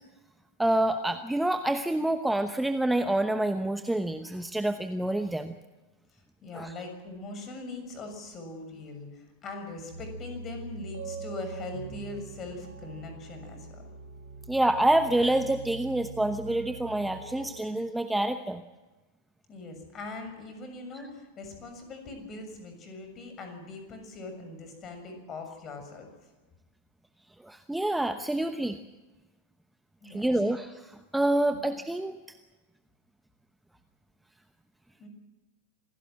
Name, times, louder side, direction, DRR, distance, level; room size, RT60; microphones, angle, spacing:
voice 1, 0.6-5.6 6.5-6.7 14.5-18.6 20.9-21.1 27.4-28.8 30.0-32.2, right 1 dB, 5° right, 9 dB, 0.9 m, -27 dB
voice 2, 6.1-13.8 19.5-26.1 30.0-30.3 31.5-31.6 35.0-35.1, left 3 dB, 30° left, 6 dB, 6.7 m, -41 dB
sound 1, 9.9-17.5, right 4 dB, 75° right, 4.7 m, -43 dB
26.5 x 17.0 x 7.7 m, 1.2 s
figure-of-eight pair, 90°, 0 cm